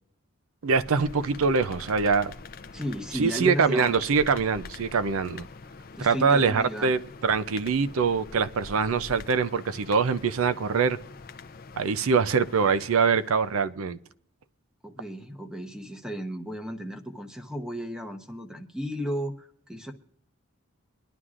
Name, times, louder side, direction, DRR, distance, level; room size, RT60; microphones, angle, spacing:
voice 1, 0.6-2.3 3.1-5.4 6.0-11.0 11.8-14.0, right 5 dB, 70° right, 0.5 m, -24 dB
sound 1, 0.7-13.6, left 4 dB, 40° left, 0.5 m, -45 dB
voice 2, 2.7-3.9 6.0-6.9 14.8-19.9, equal, 5° right, 0.8 m, -34 dB
23.5 x 11.0 x 2.5 m
head